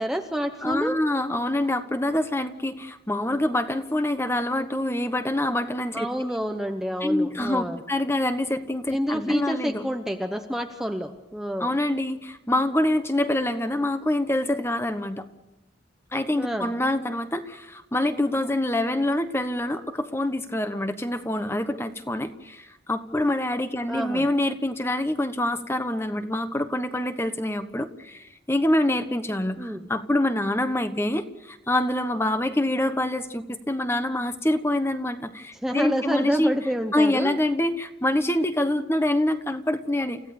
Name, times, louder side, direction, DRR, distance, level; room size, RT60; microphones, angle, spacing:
voice 1, 0.0-1.0 5.9-7.8 8.9-11.7 16.4-16.7 23.9-24.3 29.6-29.8 35.6-37.4, equal, ahead, 4 dB, 0.9 m, -28 dB
voice 2, 0.6-6.1 7.0-9.8 11.6-15.2 16.1-36.5 36.9-40.2, left 1 dB, 15° left, 9 dB, 1.2 m, -26 dB
29.5 x 16.0 x 6.8 m, 0.95 s
head